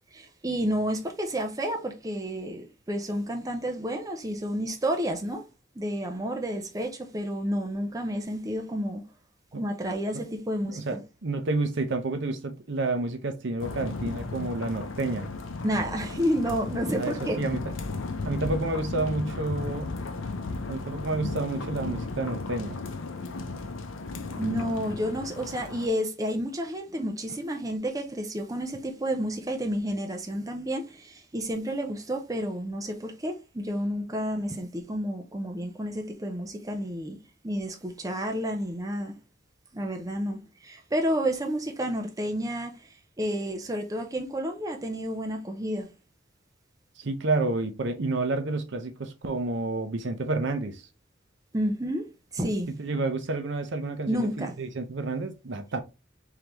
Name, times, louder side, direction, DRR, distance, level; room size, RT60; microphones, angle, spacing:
voice 1, 0.1-5.4 5.8-9.0 9.6-11.0 15.6-17.4 24.3-37.2 37.4-39.1 39.7-42.7 43.2-45.9 51.5-52.0 52.3-52.7 54.1-54.5, equal, 20° right, 0.6 m, -30 dB
voice 2, 10.6-15.3 16.9-17.6 18.2-19.9 20.7-22.8 47.0-50.8 52.7-55.8, right 2 dB, 65° right, 0.7 m, -30 dB
sound 1, 13.6-25.9, left 3 dB, 80° left, 0.6 m, -35 dB
3.8 x 3.3 x 2.9 m
head